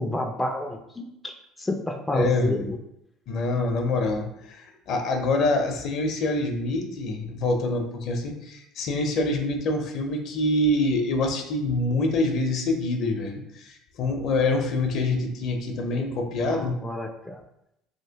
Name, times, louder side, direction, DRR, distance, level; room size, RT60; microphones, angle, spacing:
voice 1, 0.0-1.3 1.6-2.8 16.0-16.1 16.4-17.4, left 2 dB, 10° left, 3 dB, 0.3 m, -29 dB
voice 2, 2.1-2.7 3.3-16.8, left 2 dB, 60° left, 4 dB, 0.6 m, -26 dB
2.9 x 2.8 x 2.8 m, 0.80 s
supercardioid pair, 95°, 0 cm